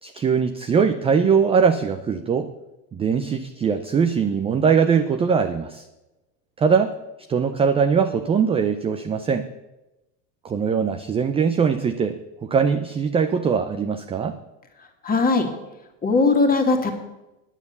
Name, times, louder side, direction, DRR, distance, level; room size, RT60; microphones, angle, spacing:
voice 1, 0.0-2.5 2.9-5.8 6.6-7.0 7.3-9.4 10.4-14.4, right 6 dB, 15° right, 8 dB, 0.4 m, -21 dB
voice 2, 15.0-15.5 16.0-16.9, left 3 dB, 20° left, 4 dB, 2.0 m, -19 dB
9.7 x 9.0 x 6.8 m, 0.98 s
supercardioid pair, 120°, 42 cm